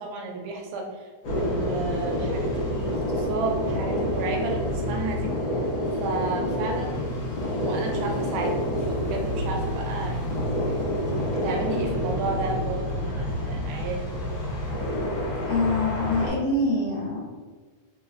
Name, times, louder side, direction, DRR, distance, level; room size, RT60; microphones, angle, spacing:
voice 1, 0.0-5.7 6.0-7.1 7.6-10.4 11.3-14.4, right 3 dB, 85° right, 1 dB, 2.1 m, -33 dB
sound 1, 1.2-16.3, left 1 dB, 65° left, 1.2 m, -28 dB
voice 2, 15.5-17.2, left 2 dB, 50° left, -6 dB, 1.6 m, -25 dB
4.3 x 3.9 x 2.5 m, 1.4 s
omnidirectional pair, 3.5 m